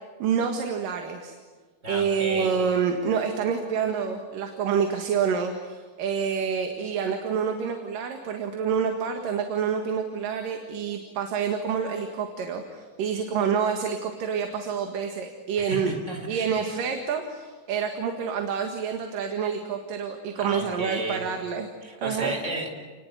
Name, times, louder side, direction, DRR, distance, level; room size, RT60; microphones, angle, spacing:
voice 1, 0.2-1.4 1.9-16.0 16.3-21.7 22.0-22.4, right 6 dB, 70° right, 4 dB, 3.4 m, -27 dB
voice 2, 1.8-2.5 15.7-16.5 20.3-21.2 21.8-22.7, right 2 dB, 20° right, 3 dB, 4.8 m, -33 dB
29.5 x 21.0 x 9.6 m, 1.4 s
omnidirectional pair, 4.0 m